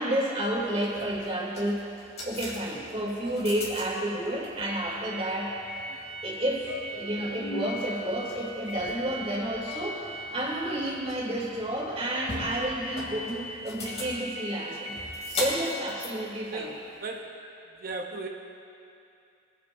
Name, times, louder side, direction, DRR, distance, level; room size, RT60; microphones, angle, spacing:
voice 1, 0.0-1.9 2.2-5.5 6.2-14.9 15.4-16.7, right 1 dB, 30° right, -4 dB, 2.6 m, -30 dB
sound 1, 0.7-17.2, left 1 dB, 35° left, 2.7 m, -39 dB
sound 2, 0.9-1.8 2.0-2.2 2.5-2.7 3.0-3.1 3.3-3.5 4.1-5.2 5.9-6.0 6.3-6.4 6.6-7.8 8.7-9.7, left 1 dB, 80° left, 0.8 m, -44 dB
voice 2, 16.5-17.3 17.8-18.3, right 3 dB, 50° right, 2 dB, 0.8 m, -36 dB
22.0 x 9.1 x 2.6 m, 2.6 s
head